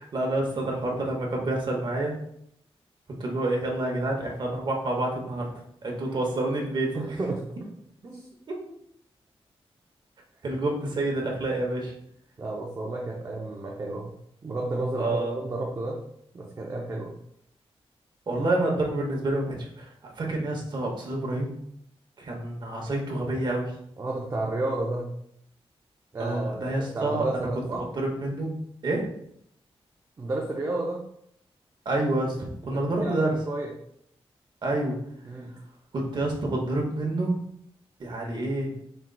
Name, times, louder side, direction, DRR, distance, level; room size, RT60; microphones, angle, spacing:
voice 1, 0.1-2.1 3.2-5.5 5.8-7.2 8.5-8.6 10.4-11.9 14.9-15.3 18.3-21.5 22.2-23.7 26.2-28.5 28.8-29.0 31.8-33.3 34.6-35.0 35.9-37.4 38.0-38.7, right 2 dB, 45° right, 0 dB, 0.9 m, -28 dB
voice 2, 6.9-7.4 8.0-8.3 12.4-14.1 14.4-16.0 16.3-17.1 24.0-25.1 26.1-27.8 30.2-31.0 32.7-33.7 35.2-35.5, right 2 dB, 30° right, -2 dB, 0.5 m, -31 dB
4.4 x 3.7 x 2.2 m, 0.71 s
wide cardioid pair, 175°, 10 cm